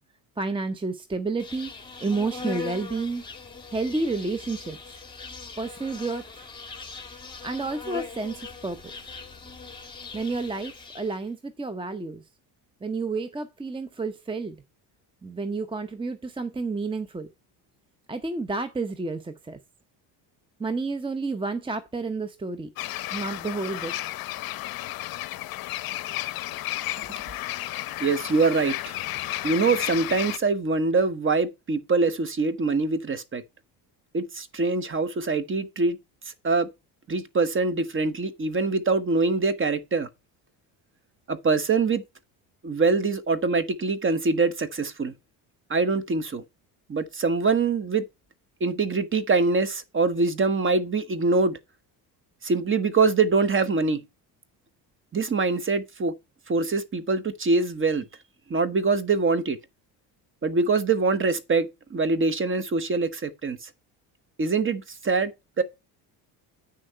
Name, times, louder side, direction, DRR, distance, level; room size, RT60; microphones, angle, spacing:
voice 1, 0.4-1.7 2.0-3.2 3.7-4.8 5.6-6.2 7.4-8.8 10.1-12.2 12.8-14.6 15.2-17.3 18.1-19.6 20.6-22.7 23.1-23.9, right 3 dB, 10° right, 0.7 m, -30 dB
Insect, 1.4-11.2, left 4 dB, 10° left, 2.3 m, -40 dB
sound 1, 22.8-30.4, left 15 dB, 55° left, 0.7 m, -32 dB
voice 2, 28.0-28.9 29.4-33.4 34.1-36.0 36.4-36.7 37.1-40.1 41.3-42.0 42.6-45.1 45.7-46.4 46.9-48.0 48.6-51.6 52.4-54.0 55.1-56.1 56.5-58.1 58.5-59.6 60.4-63.7 64.4-65.3 65.6-65.7, right 4 dB, 30° right, 1.1 m, -24 dB
8.7 x 6.4 x 4.4 m
cardioid pair, 100°, 43 cm